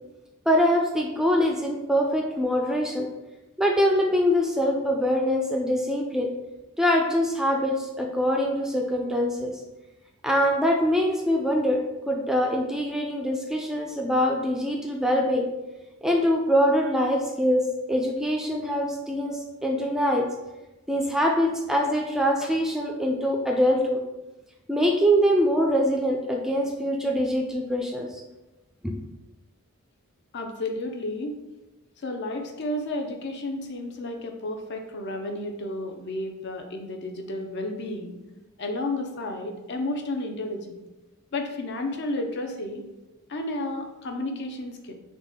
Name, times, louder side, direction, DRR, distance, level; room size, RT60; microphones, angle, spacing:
voice 1, 0.5-3.1 3.6-6.3 6.8-9.6 10.2-15.5 16.0-20.3 20.9-24.0 24.7-28.1 28.8-28.9, equal, ahead, 0 dB, 0.3 m, -24 dB
voice 2, 30.3-31.4 32.0-38.2 38.6-40.7 41.3-42.8 43.3-44.9, left 2 dB, 50° left, 4 dB, 0.5 m, -32 dB
4.0 x 3.0 x 3.5 m, 1.0 s
head